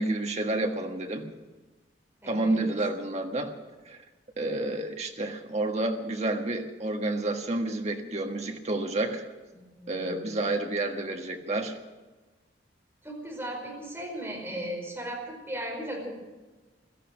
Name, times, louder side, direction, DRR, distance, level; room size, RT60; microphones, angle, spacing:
voice 1, 0.0-1.3 2.2-3.5 3.9-4.0 4.4-9.3 9.9-11.8 14.6-14.7, right 2 dB, 35° right, 3 dB, 1.5 m, -30 dB
voice 2, 2.2-2.7 9.5-10.3 13.0-16.1, right 1 dB, 10° right, -2 dB, 5.1 m, -37 dB
17.0 x 13.5 x 6.4 m, 1.2 s
head